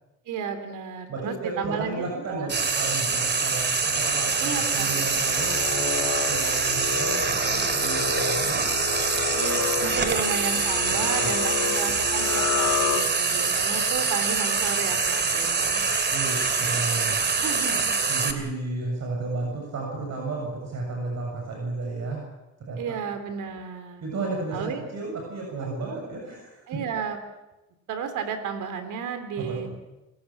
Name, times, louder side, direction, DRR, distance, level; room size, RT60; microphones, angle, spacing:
voice 1, 0.2-2.5 2.9-3.0 4.4-5.1 9.4-15.8 17.4-18.0 18.3-18.5 22.8-24.0 24.5-24.9 25.8-26.0 26.7-27.2 27.9-29.7, right 6 dB, 85° right, 9 dB, 3.3 m, -33 dB
voice 2, 1.1-8.6 10.9-11.3 16.1-17.2 18.1-22.2 22.7-23.0 24.0-26.8 29.4-29.7, right 3 dB, 60° right, 0 dB, 7.2 m, -33 dB
Frying (food), 2.5-18.3, right 4 dB, 35° right, 2.6 m, -25 dB
sound 1, 5.3-13.5, left 8 dB, 90° left, 2.0 m, -31 dB
28.5 x 17.0 x 7.4 m, 1.0 s
cardioid pair, 90°, 30 cm